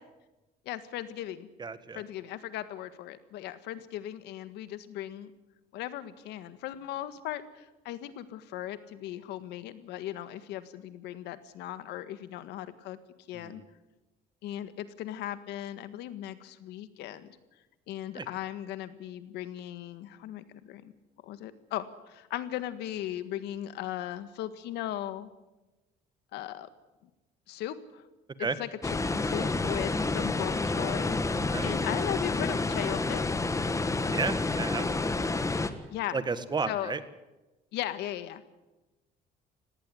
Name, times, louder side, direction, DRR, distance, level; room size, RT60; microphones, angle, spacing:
voice 1, 0.7-1.5 2.0-5.3 5.7-13.0 13.3-13.6 14.4-17.4 17.9-20.9 21.2-25.3 26.3-26.7 27.5-28.0 28.4-28.7 29.1-33.3 35.9-36.2 36.7-36.9 37.7-38.4, left 12 dB, 85° left, 12 dB, 1.7 m, -37 dB
voice 2, 1.6-2.0 13.3-13.6 18.1-18.3 28.4-28.6 31.5-31.7 34.1-34.8 36.1-37.0, right 4 dB, 25° right, 13 dB, 1.6 m, -32 dB
sound 1, 28.8-35.7, left 3 dB, 20° left, 1.6 m, -29 dB
18.5 x 18.0 x 9.6 m, 1.0 s
cardioid pair, 110°, 17 cm